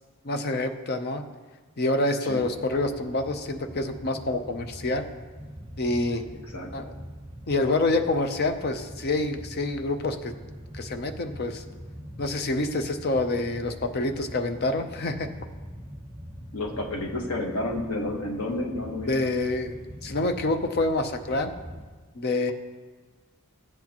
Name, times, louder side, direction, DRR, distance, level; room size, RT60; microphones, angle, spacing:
voice 1, 0.2-1.2 1.8-5.1 5.8-6.2 6.7-6.9 7.5-10.3 10.7-11.6 12.2-15.3 19.1-19.7 20.0-21.5 22.2-22.5, left 2 dB, 45° left, 7 dB, 0.6 m, -27 dB
sound 1, 2.3-21.9, equal, 25° right, 1.8 m, -43 dB
voice 2, 16.5-19.1, left 1 dB, 90° left, 1 dB, 1.3 m, -30 dB
14.5 x 8.3 x 2.9 m, 1.4 s
head